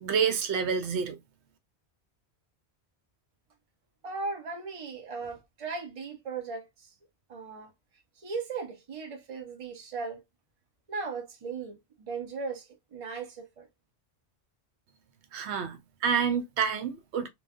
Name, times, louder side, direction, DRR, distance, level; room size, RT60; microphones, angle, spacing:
voice 1, 0.0-1.2 15.3-17.3, right 6 dB, 85° right, 0.9 m, -28 dB
voice 2, 4.0-6.9 7.3-7.7 8.2-10.2 10.9-13.7, right 4 dB, 35° right, 0.7 m, -37 dB
3.1 x 2.2 x 2.3 m
omnidirectional pair, 1.1 m